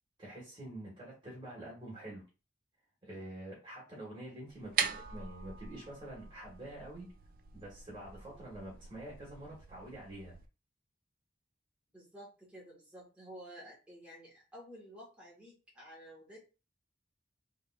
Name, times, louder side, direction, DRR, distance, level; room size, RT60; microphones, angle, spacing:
voice 1, 0.2-2.2 3.0-7.1 7.5-10.4, right 1 dB, 25° right, -6 dB, 1.6 m, -47 dB
sound 1, 4.5-10.5, right 7 dB, 50° right, 0.4 m, -41 dB
voice 2, 11.9-16.4, equal, 5° right, -6 dB, 1.5 m, -52 dB
3.7 x 3.5 x 2.3 m, 0.33 s
head